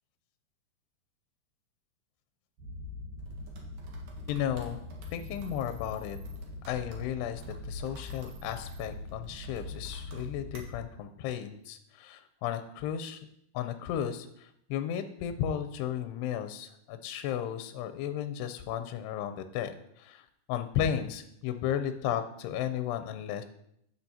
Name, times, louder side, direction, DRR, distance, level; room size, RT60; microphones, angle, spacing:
sound 1, 2.6-10.8, left 2 dB, 60° right, 2.4 m, -42 dB
voice 1, 4.3-4.8 5.1-6.2 6.7-13.3 13.5-23.4, left 10 dB, 85° left, 9 dB, 2.6 m, -34 dB
13.5 x 7.9 x 2.8 m, 0.75 s
omnidirectional pair, 4.9 m